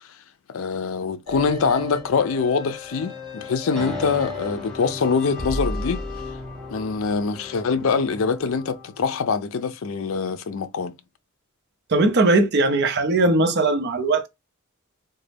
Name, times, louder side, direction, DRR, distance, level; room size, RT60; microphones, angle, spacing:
voice 1, 0.5-6.0 6.7-10.9, left 5 dB, 70° left, 0.5 m, -24 dB
sound 1, 1.3-9.3, left 3 dB, ahead, 1.3 m, -34 dB
voice 2, 11.9-14.3, right 2 dB, 55° right, 0.6 m, -19 dB
3.9 x 2.2 x 3.3 m
head